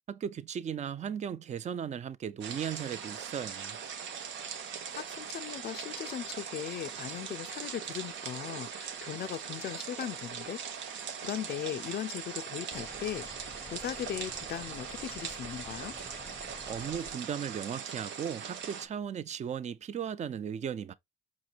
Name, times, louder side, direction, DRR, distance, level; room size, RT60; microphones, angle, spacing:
voice 1, 0.1-3.8 16.7-20.9, right 8 dB, 35° right, 0.4 m, -36 dB
sound 1, 2.4-18.9, right 7 dB, 70° right, 0.7 m, -41 dB
voice 2, 4.9-15.9, left 10 dB, 50° left, 0.4 m, -39 dB
sound 2, 12.7-17.1, left 2 dB, 10° left, 0.6 m, -49 dB
5.1 x 2.9 x 2.4 m
cardioid pair, 90°, 20 cm